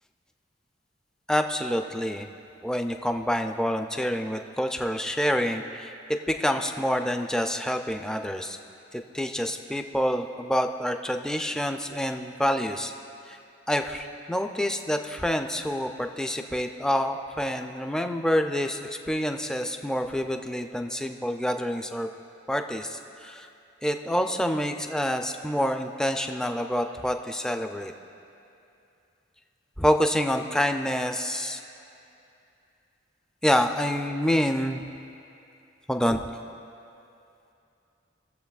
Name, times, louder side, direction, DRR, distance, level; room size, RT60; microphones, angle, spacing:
voice 1, 1.3-2.3 2.6-5.9 6.3-8.6 9.1-12.9 13.7-18.8 19.1-22.1 22.5-23.4 23.8-27.9 29.8-31.6 33.4-34.8 35.9-36.2, equal, 5° left, 5 dB, 0.4 m, -27 dB
19.5 x 7.2 x 2.4 m, 2.7 s
head